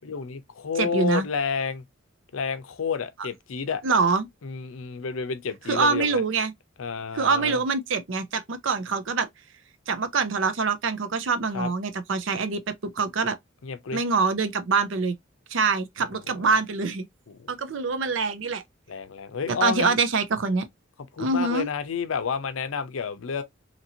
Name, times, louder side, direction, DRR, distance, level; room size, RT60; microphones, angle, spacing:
voice 1, 0.0-1.9 2.3-3.8 4.4-6.2 6.8-7.6 11.5-11.7 13.6-14.0 16.4-16.5 17.3-17.5 18.9-20.0 21.1-23.4, left 6 dB, 90° left, 0.5 m, -30 dB
voice 2, 0.8-1.3 3.2-3.3 3.8-4.3 5.7-6.5 7.1-9.3 9.9-12.6 12.9-13.4 13.9-15.1 15.5-17.1 17.5-18.6 19.6-20.7 21.2-21.7, right 4 dB, 70° right, 0.5 m, -24 dB
2.8 x 2.6 x 2.7 m
head